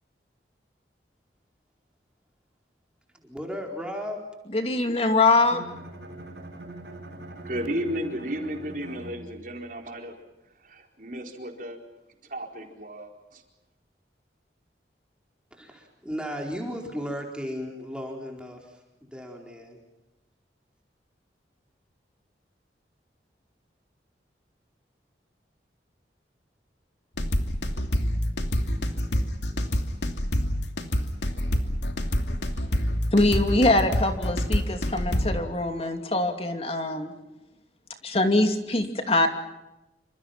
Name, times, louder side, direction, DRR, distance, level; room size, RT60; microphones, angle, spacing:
voice 1, 3.2-4.2 15.5-19.8, equal, 5° right, 1 dB, 4.4 m, -35 dB
voice 2, 4.5-5.6 33.1-37.1 38.0-39.3, left 2 dB, 35° left, 6 dB, 2.7 m, -23 dB
Bowed string instrument, 5.3-9.6, right 1 dB, 70° right, 5.7 m, -42 dB
voice 3, 7.4-10.1 10.6-11.8 12.3-13.4, equal, 50° right, 3 dB, 4.5 m, -34 dB
sound 1, 27.2-35.4, equal, 80° left, 2.8 m, -26 dB
28.0 x 26.5 x 5.9 m, 0.98 s
head